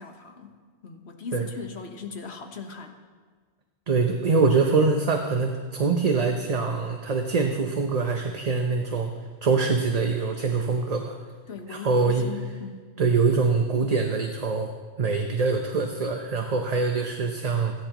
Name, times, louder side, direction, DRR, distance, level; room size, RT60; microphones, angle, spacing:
voice 1, 0.0-3.0 11.5-12.9, left 5 dB, 70° left, 4 dB, 1.5 m, -39 dB
voice 2, 3.9-9.1 9.4-11.2 11.7-12.2 13.0-14.7 15.0-17.7, right 4 dB, 40° right, 4 dB, 0.8 m, -24 dB
29.0 x 10.0 x 3.0 m, 1.5 s
omnidirectional pair, 1.1 m